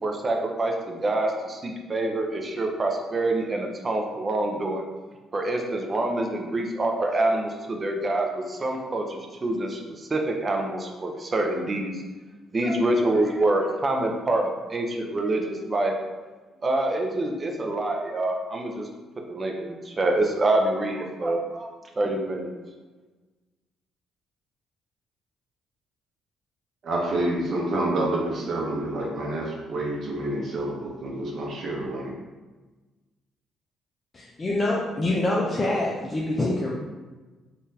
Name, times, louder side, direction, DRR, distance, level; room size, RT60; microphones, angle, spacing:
voice 1, 0.0-4.8 5.3-12.0 12.5-15.9 16.6-18.9 19.3-21.7 22.0-22.5, right 2 dB, 30° right, 2 dB, 0.5 m, -26 dB
voice 2, 26.8-32.1, right 1 dB, 55° right, -2 dB, 0.8 m, -28 dB
voice 3, 34.1-36.7, left 2 dB, 30° left, -4 dB, 0.5 m, -25 dB
3.7 x 2.4 x 2.7 m, 1.2 s
cardioid pair, 85°, 0 cm